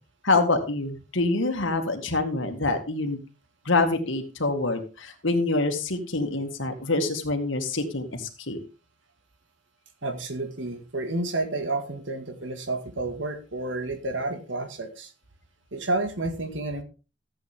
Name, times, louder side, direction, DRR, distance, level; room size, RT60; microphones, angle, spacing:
voice 1, 0.2-3.2 3.7-8.6, left 2 dB, 75° left, 5 dB, 2.1 m, -26 dB
voice 2, 10.0-15.1 15.7-16.8, right 2 dB, 70° right, 7 dB, 1.9 m, -30 dB
14.0 x 8.4 x 3.6 m, 0.32 s
head